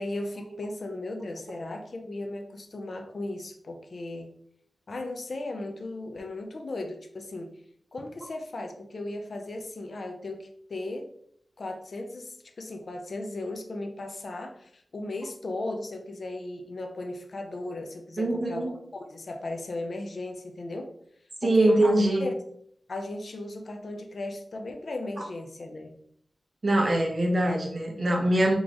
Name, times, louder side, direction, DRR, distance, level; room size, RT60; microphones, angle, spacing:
voice 1, 0.0-4.3 4.9-7.5 7.9-11.1 11.6-20.9 21.4-21.9 22.2-22.3 22.9-25.9, left 2 dB, 60° left, 5 dB, 0.6 m, -36 dB
voice 2, 18.2-18.7 21.4-22.3 26.6-28.5, right 1 dB, 40° right, 1 dB, 0.9 m, -23 dB
3.9 x 3.0 x 3.7 m, 0.68 s
wide cardioid pair, 105°, 0 cm